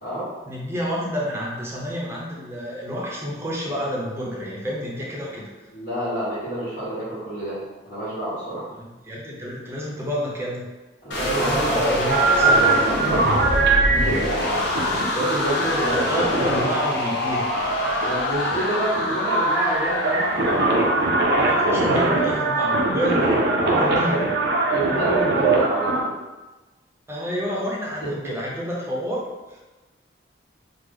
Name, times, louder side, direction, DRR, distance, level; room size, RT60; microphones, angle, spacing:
voice 1, 0.5-5.5 8.7-10.6 11.4-12.6 15.9-17.5 21.4-23.4 23.7-24.2 27.1-29.2 29.5-29.6, equal, 15° right, -4 dB, 0.6 m, -29 dB
voice 2, 5.7-7.6 7.8-8.6 11.0-14.7 15.1-16.2 18.0-20.3 23.1-23.3 23.6-24.2 24.7-26.1 28.0-28.1, right 1 dB, 50° left, -14 dB, 1.2 m, -28 dB
sound 1, 11.1-23.2, left 1 dB, 85° left, 0.8 m, -26 dB
sound 2, 12.1-26.0, right 3 dB, 60° right, 0.5 m, -22 dB
3.1 x 2.0 x 3.7 m, 1.2 s
head